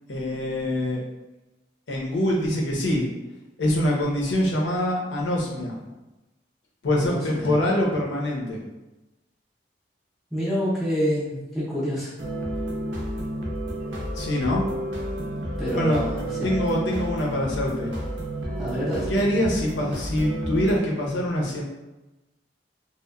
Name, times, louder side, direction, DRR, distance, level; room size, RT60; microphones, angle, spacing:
voice 1, 0.1-1.0 1.9-3.1 3.6-5.9 6.8-8.6 14.1-14.7 15.7-16.0 16.4-17.9 19.1-21.6, left 1 dB, 85° left, -2 dB, 0.6 m, -24 dB
voice 2, 6.9-7.5 10.3-12.1 15.6-16.5 18.6-19.1, equal, ahead, -10 dB, 0.4 m, -27 dB
sound 1, 12.2-20.8, right 1 dB, 80° right, 0.5 m, -31 dB
2.8 x 2.0 x 2.3 m, 1.0 s
head